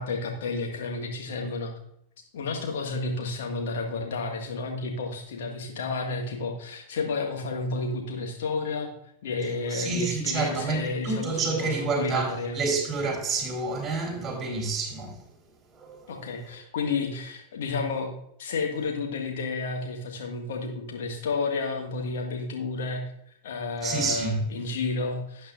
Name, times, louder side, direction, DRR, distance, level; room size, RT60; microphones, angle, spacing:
voice 1, 0.0-1.7 2.3-8.9 9.2-12.6 16.1-18.1 18.4-23.0 23.4-25.5, left 3 dB, 60° left, 1.9 m, -31 dB
voice 2, 9.6-15.2 15.7-16.3 23.8-24.4, right 4 dB, 20° right, 4.2 m, -29 dB
12.5 x 8.5 x 2.6 m
figure-of-eight pair, 90°, 0 cm